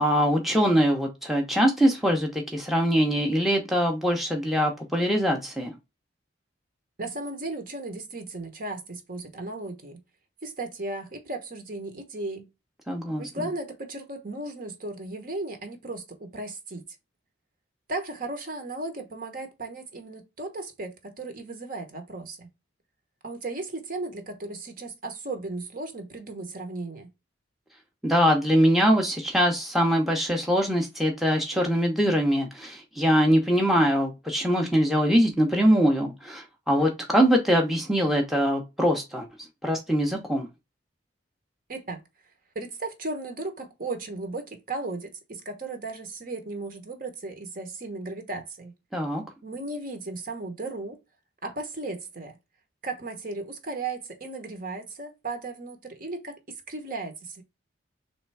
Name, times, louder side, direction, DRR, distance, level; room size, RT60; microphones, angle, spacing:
voice 1, 0.0-5.7 12.9-13.3 28.0-39.3 39.6-40.5 48.9-49.2, equal, ahead, 0.7 m, -23 dB
voice 2, 7.0-10.0 10.4-12.5 13.2-16.8 17.9-22.5 23.2-27.1 41.7-42.0 42.5-48.7 49.4-51.0 51.4-52.4 52.8-56.4 56.7-57.4, right 2 dB, 45° right, 1.0 m, -35 dB
3.6 x 3.2 x 4.6 m
head